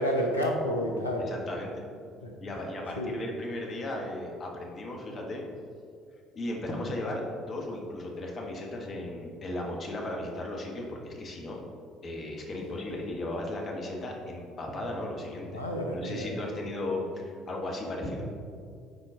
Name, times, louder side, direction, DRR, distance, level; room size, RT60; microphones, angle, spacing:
voice 1, 0.0-1.3 2.2-2.3 3.0-3.2 15.5-16.6, equal, 85° left, 0 dB, 0.8 m, -30 dB
voice 2, 1.3-1.7 2.4-5.4 6.3-11.6 12.0-15.6 15.9-18.2, left 1 dB, 40° left, 0 dB, 1.4 m, -36 dB
9.3 x 4.4 x 3.8 m, 2.3 s
figure-of-eight pair, 55°, 0 cm